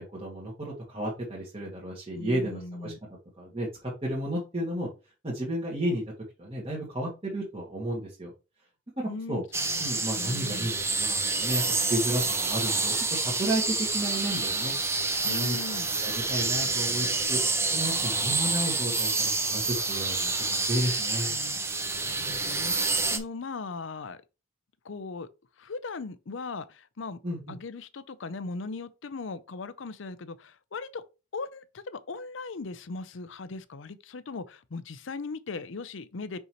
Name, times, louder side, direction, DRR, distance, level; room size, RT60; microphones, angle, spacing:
voice 1, 0.0-2.9 3.4-3.7 4.0-4.9 5.2-6.0 6.4-8.3 9.0-9.4 9.8-11.6 11.9-15.8 16.0-17.4 17.7-21.3 27.2-27.6, right 1 dB, 30° right, 1.8 m, -32 dB
voice 2, 2.1-3.0 9.1-9.9 10.2-10.8 15.2-15.9 20.8-21.6 22.0-24.2 24.8-25.3 25.6-27.2 27.5-31.0 31.3-36.4, left 3 dB, 70° left, 0.6 m, -39 dB
sound 1, 9.5-23.2, right 3 dB, 15° right, 0.7 m, -28 dB
5.6 x 5.5 x 3.0 m
head